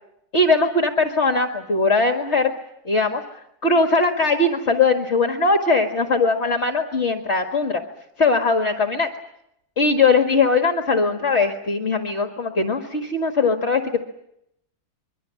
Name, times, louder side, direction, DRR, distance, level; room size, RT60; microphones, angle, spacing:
voice 1, 0.3-2.5 2.9-3.2 3.6-7.8 8.2-9.1 9.8-14.0, left 3 dB, 45° left, 4 dB, 2.0 m, -20 dB
25.5 x 23.5 x 7.6 m, 0.79 s
omnidirectional pair, 1.7 m